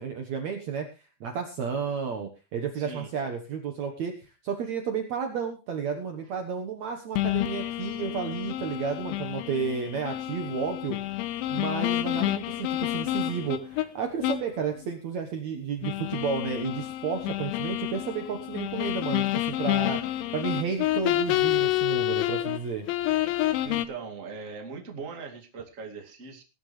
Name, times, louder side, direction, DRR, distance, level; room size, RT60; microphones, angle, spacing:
voice 1, 0.0-11.0 11.5-20.0 20.3-22.9, right 6 dB, 80° right, 5 dB, 1.5 m, -32 dB
voice 2, 2.7-3.1 23.6-26.4, right 4 dB, 30° right, 2 dB, 1.5 m, -40 dB
sound 1, 7.2-13.9 14.2-14.5 14.8-14.9 15.8-22.6 22.9-23.9, left 15 dB, 90° left, 3.3 m, -29 dB
20.0 x 11.0 x 3.3 m, 0.31 s
omnidirectional pair, 5.3 m